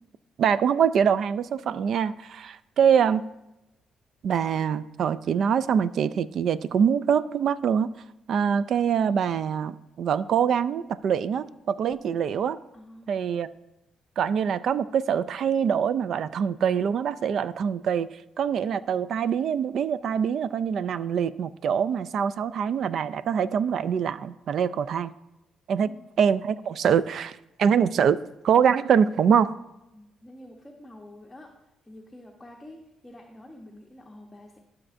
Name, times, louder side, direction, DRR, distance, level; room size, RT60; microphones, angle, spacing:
voice 1, 0.4-3.2 4.2-7.9 8.3-12.6 13.1-13.5 14.2-18.1 18.4-25.1 25.7-25.9 26.2-28.2 28.4-29.5, right 7 dB, 65° right, 16 dB, 0.3 m, -24 dB
voice 2, 12.7-13.2 25.8-26.1 29.9-31.5 31.8-34.6, left 1 dB, 15° left, 0 dB, 0.9 m, -47 dB
12.0 x 5.8 x 2.6 m, 0.92 s
cardioid pair, 90°, 0 cm